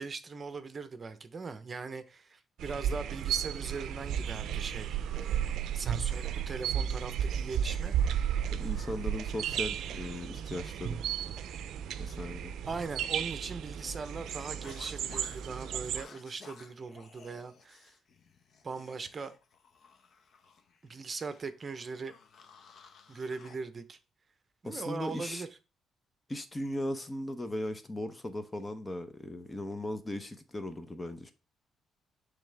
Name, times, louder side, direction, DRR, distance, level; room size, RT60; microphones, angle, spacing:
voice 1, 0.0-7.9 12.7-17.9 18.6-19.3 20.8-22.1 23.1-24.0 24.6-25.5, right 4 dB, 35° right, 0.9 m, -40 dB
sound 1, 2.6-16.0, right 9 dB, 75° right, 0.5 m, -34 dB
voice 2, 8.5-11.0 12.0-12.5 24.6-25.4 26.3-31.3, left 1 dB, 20° left, 0.9 m, -38 dB
sound 2, 14.3-23.6, left 5 dB, 60° left, 0.9 m, -55 dB
10.5 x 3.5 x 3.5 m
cardioid pair, 90°, 0 cm